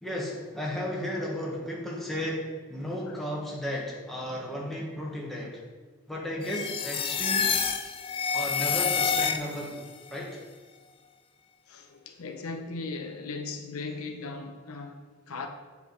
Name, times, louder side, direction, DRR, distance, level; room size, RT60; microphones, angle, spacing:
voice 1, 0.0-5.6 6.1-7.6 8.3-9.8 10.1-10.4, left 1 dB, ahead, 1.3 m, -34 dB
sound 1, 6.4-9.8, left 6 dB, 25° left, 0.4 m, -28 dB
voice 2, 11.7-15.5, left 3 dB, 85° left, 0.8 m, -38 dB
7.8 x 4.7 x 5.4 m
head